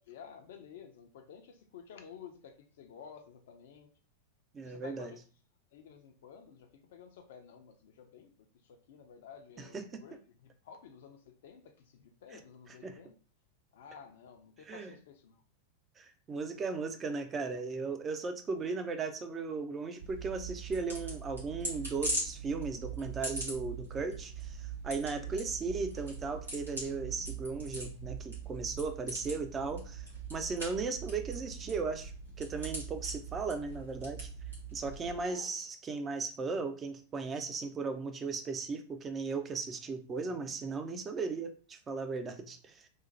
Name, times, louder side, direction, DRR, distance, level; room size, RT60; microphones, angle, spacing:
voice 1, 0.1-3.9 4.6-5.2 5.7-8.3 8.6-13.1 13.7-15.4 25.2-25.5 35.1-35.5, left 7 dB, 55° left, 0.4 m, -52 dB
voice 2, 4.5-5.1 9.7-10.0 12.8-13.0 14.7-14.9 16.0-32.1 32.4-34.3 34.7-42.9, right 4 dB, 20° right, 0.4 m, -37 dB
sound 1, 20.0-35.2, right 3 dB, 80° right, 1.2 m, -41 dB
3.0 x 2.0 x 2.7 m
figure-of-eight pair, 90°, 0 cm